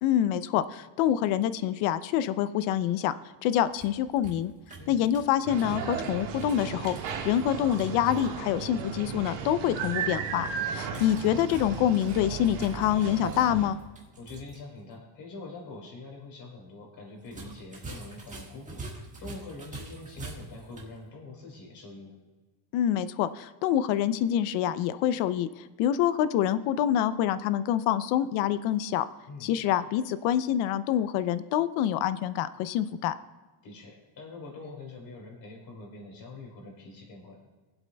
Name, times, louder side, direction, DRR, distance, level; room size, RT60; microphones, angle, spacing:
voice 1, 0.0-3.1 3.4-4.5 4.9-7.0 7.2-13.8 22.7-29.0 29.4-33.1, left 11 dB, 70° left, 14 dB, 0.7 m, -26 dB
sound 1, 3.5-8.3 10.9-14.6 14.9-15.0 17.2-21.0, right 2 dB, 15° right, 1.6 m, -46 dB
sound 2, 5.5-13.7, right 6 dB, 65° right, 1.6 m, -35 dB
voice 2, 14.2-22.2 29.3-29.5 33.6-37.4, left 3 dB, 45° left, -1 dB, 3.9 m, -44 dB
23.0 x 8.0 x 2.3 m, 1.3 s
cardioid pair, 145°, 49 cm